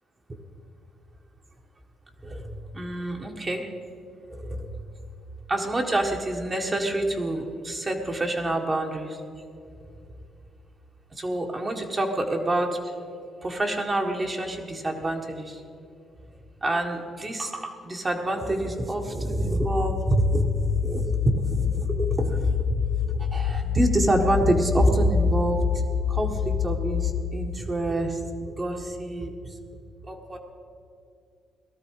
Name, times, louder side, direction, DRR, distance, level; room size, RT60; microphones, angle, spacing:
voice 1, 2.2-3.7 4.3-4.7 5.5-9.2 11.1-12.9 13.4-15.6 16.6-25.6 26.1-29.3 30.0-30.4, right 1 dB, 25° right, 2 dB, 1.5 m, -27 dB
sound 1, 19.6-27.3, left 10 dB, 40° left, 0.7 m, -27 dB
18.0 x 12.5 x 4.8 m, 2.4 s
cardioid pair, 90°, 0 cm